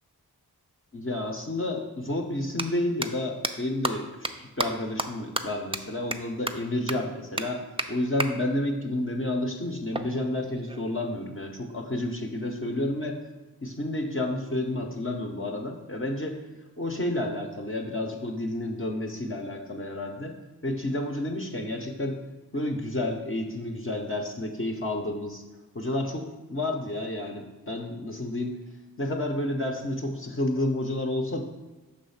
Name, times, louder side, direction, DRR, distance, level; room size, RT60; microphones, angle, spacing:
voice 1, 0.9-13.2 13.6-16.4 16.8-20.3 20.6-22.2 22.5-25.4 25.7-28.6 29.0-31.4, left 1 dB, 35° left, 1 dB, 0.7 m, -30 dB
sound 1, 1.3-1.4 2.4-2.6 3.0-3.1 3.4-3.5 3.8-3.9 4.2-4.3 4.6-4.7 5.0-5.1 5.4-5.5 5.7-5.8 6.1-6.2 6.5-6.6 6.9-7.0 7.4-7.5 7.8-7.9 8.2-8.3 9.9-11.0, right 2 dB, 15° right, 0.4 m, -30 dB
6.2 x 3.2 x 5.6 m, 1.2 s
wide cardioid pair, 40°, 37 cm